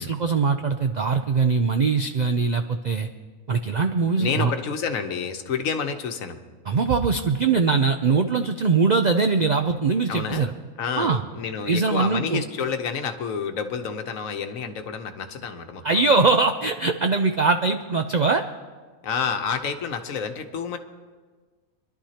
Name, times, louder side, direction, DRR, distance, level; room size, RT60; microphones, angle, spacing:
voice 1, 0.0-3.1 3.5-4.5 6.7-10.5 11.0-11.2 11.7-12.4 15.8-18.4, right 4 dB, 70° right, 7 dB, 0.4 m, -22 dB
voice 2, 4.2-6.4 10.1-10.5 10.8-16.0 19.0-20.8, left 6 dB, 75° left, 7 dB, 1.3 m, -29 dB
25.0 x 11.5 x 2.9 m, 1.4 s
omnidirectional pair, 1.4 m